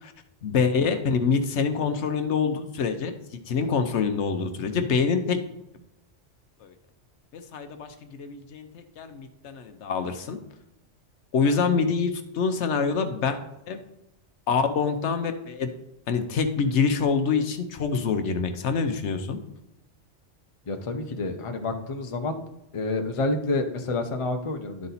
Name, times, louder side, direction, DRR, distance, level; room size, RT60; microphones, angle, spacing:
voice 1, 0.4-5.4 6.6-6.7 7.3-10.4 11.3-13.4 13.7-13.8 14.5-15.7 16.1-19.4, left 5 dB, 70° left, 8 dB, 1.0 m, -26 dB
voice 2, 20.7-22.4 22.7-24.9, left 2 dB, 30° left, 5 dB, 0.7 m, -28 dB
11.0 x 4.1 x 4.0 m, 0.87 s
omnidirectional pair, 1.2 m